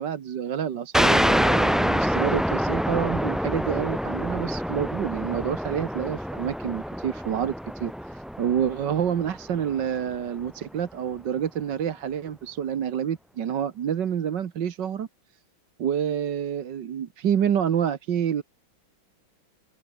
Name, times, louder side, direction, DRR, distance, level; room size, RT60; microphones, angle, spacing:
voice 1, 0.0-15.1 15.8-18.4, right 9 dB, 65° right, 1.9 m, -28 dB
sound 1, 0.9-10.2, equal, ahead, 1.1 m, -26 dB
open air
omnidirectional pair, 2.2 m